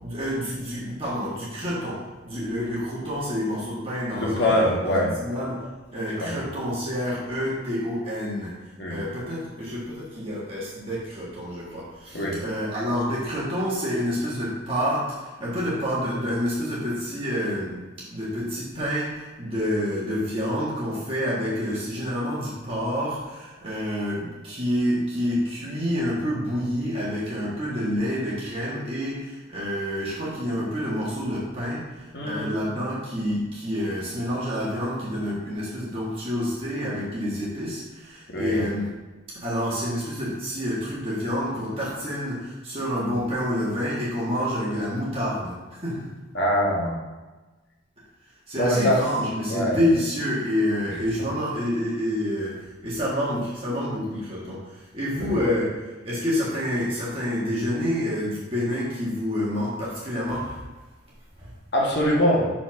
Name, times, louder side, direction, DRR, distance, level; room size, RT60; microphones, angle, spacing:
voice 1, 0.0-4.5 4.8-8.5 8.9-17.8 18.1-38.9 39.3-46.1 48.5-60.6 61.4-61.5, equal, 30° right, -7 dB, 1.6 m, -28 dB
voice 2, 4.1-5.1 6.2-6.4 8.8-9.0 12.1-12.4 32.1-32.6 38.3-38.6 46.3-46.9 48.6-49.0 49.5-49.8 61.7-62.5, equal, 55° left, -3 dB, 1.7 m, -23 dB
5.6 x 4.4 x 5.9 m, 1.2 s
head